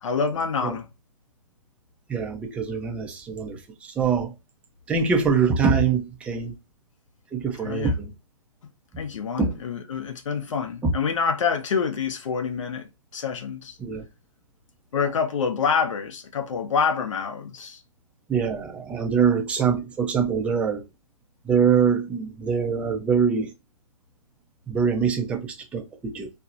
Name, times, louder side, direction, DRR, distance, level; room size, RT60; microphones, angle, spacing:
voice 1, 0.0-0.9 7.6-8.0 9.0-13.8 14.9-17.8, left 6 dB, 65° left, 0.7 m, -27 dB
voice 2, 2.1-4.3 4.9-6.5 7.3-8.1 9.4-9.5 10.8-10.9 13.8-14.0 18.3-20.8 21.4-23.5 24.7-26.3, right 6 dB, 5° right, 0.4 m, -24 dB
4.2 x 2.0 x 2.5 m
hypercardioid pair, 135°, 18 cm